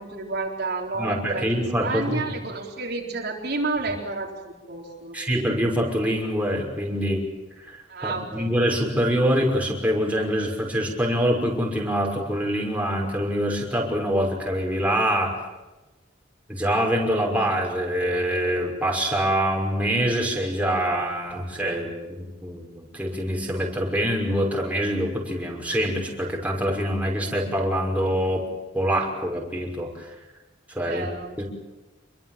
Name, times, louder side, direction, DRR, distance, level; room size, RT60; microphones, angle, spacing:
voice 1, 0.0-5.1 7.9-8.5 30.8-31.4, right 3 dB, 60° right, 0 dB, 4.1 m, -31 dB
voice 2, 0.9-2.4 5.1-7.3 7.6-15.4 16.5-28.4 28.7-30.1 30.7-31.0 31.4-31.5, equal, 10° right, -1 dB, 5.8 m, -25 dB
28.0 x 23.0 x 7.5 m, 1.1 s
head